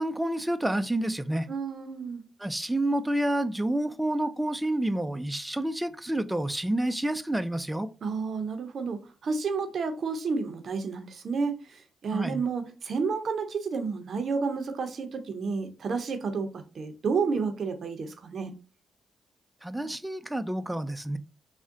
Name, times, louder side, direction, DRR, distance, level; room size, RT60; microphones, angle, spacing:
voice 1, 0.0-1.5 2.4-7.9 12.1-12.4 19.6-21.2, right 1 dB, 10° right, 0.4 m, -29 dB
voice 2, 1.5-2.2 8.0-11.6 12.0-16.5 16.7-18.5, right 5 dB, 65° right, 0.5 m, -30 dB
3.5 x 2.1 x 2.5 m
cardioid pair, 60°, 0 cm